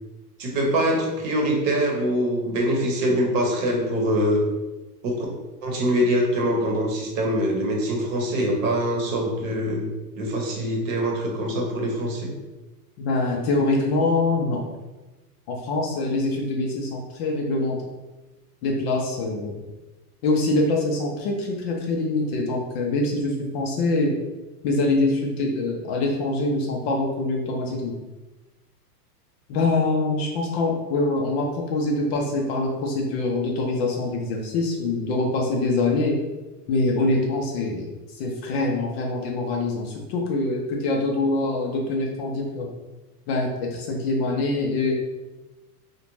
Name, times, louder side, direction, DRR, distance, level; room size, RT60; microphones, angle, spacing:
voice 1, 0.4-4.4 5.0-5.3 5.6-12.3, equal, 55° right, 0 dB, 0.9 m, -24 dB
voice 2, 13.0-14.6 15.5-17.8 18.6-19.6 20.2-24.1 24.6-27.9 29.5-36.2 36.7-37.9 38.2-42.7 43.3-44.9, left 2 dB, 45° left, 0 dB, 0.4 m, -24 dB
2.4 x 2.2 x 3.0 m, 1.1 s
hypercardioid pair, 125°, 48 cm